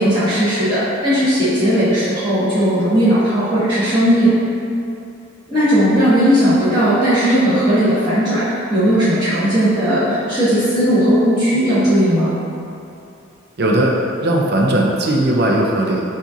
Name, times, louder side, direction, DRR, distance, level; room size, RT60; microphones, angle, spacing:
voice 1, 0.0-4.3 5.5-12.3, equal, 20° right, -15 dB, 1.2 m, -16 dB
voice 2, 13.6-13.9 14.2-16.0, right 1 dB, 55° right, -1 dB, 0.6 m, -17 dB
7.4 x 2.5 x 2.7 m, 2.7 s
head